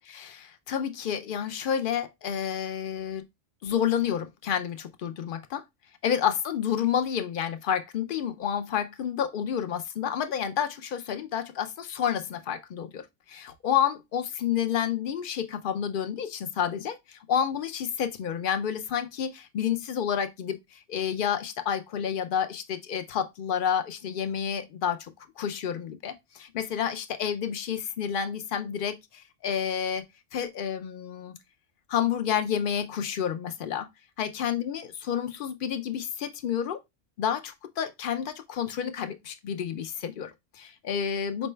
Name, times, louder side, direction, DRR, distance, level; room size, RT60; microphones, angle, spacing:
voice 1, 0.1-3.2 3.6-5.6 6.0-30.0 30.3-31.3 31.9-33.9 34.2-36.8 37.2-41.5, left 8 dB, 60° left, 0.6 m, -30 dB
5.1 x 2.2 x 3.1 m
omnidirectional pair, 1.2 m